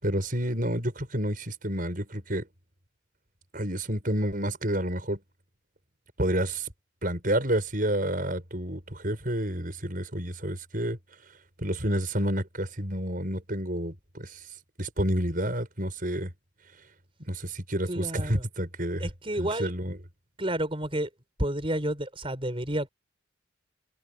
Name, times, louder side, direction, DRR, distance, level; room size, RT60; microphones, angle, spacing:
voice 1, 0.0-2.5 3.5-5.2 6.2-6.7 7.0-11.0 11.6-14.4 14.8-16.3 17.2-19.1 19.4-20.0, right 1 dB, 45° right, 6.8 m, -29 dB
voice 2, 17.9-18.4 19.0-19.7 20.4-21.1 21.4-22.9, right 1 dB, 30° right, 6.0 m, -30 dB
head